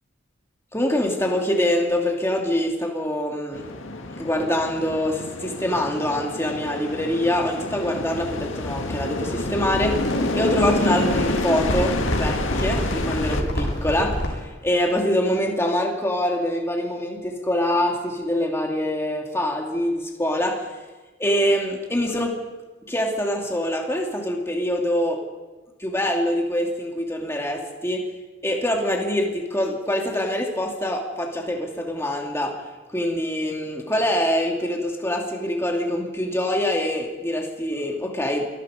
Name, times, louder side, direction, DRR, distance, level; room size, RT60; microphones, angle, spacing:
voice 1, 0.7-3.7 4.2-20.7 21.2-22.4 22.9-25.2 25.8-28.0 28.4-32.6 32.9-38.5, left 1 dB, 15° left, 0 dB, 2.7 m, -24 dB
sound 1, 3.5-13.4, left 2 dB, 80° left, 1.9 m, -28 dB
sound 2, 9.4-14.4, equal, 55° left, 7.4 m, -28 dB
26.5 x 19.5 x 5.2 m, 1.2 s
head